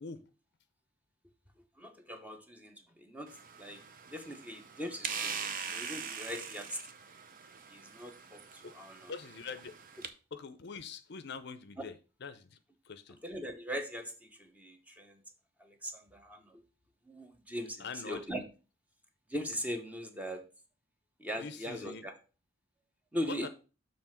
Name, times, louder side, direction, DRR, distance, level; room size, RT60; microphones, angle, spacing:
voice 1, 1.8-3.3 3.6-3.8 4.1-6.8 7.7-9.1 13.1-15.2 15.6-16.6 17.1-18.4 19.3-20.4 21.2-22.2 23.1-23.5, equal, 5° right, 5 dB, 0.8 m, -40 dB
sound 1, 3.3-10.1, right 6 dB, 45° right, 0.6 m, -42 dB
voice 2, 9.1-9.7 10.3-11.9 12.2-12.6 12.9-13.2 17.8-18.2 21.4-22.0 23.3-23.5, left 5 dB, 55° left, 12 dB, 0.5 m, -43 dB
6.9 x 3.2 x 5.7 m, 0.34 s
head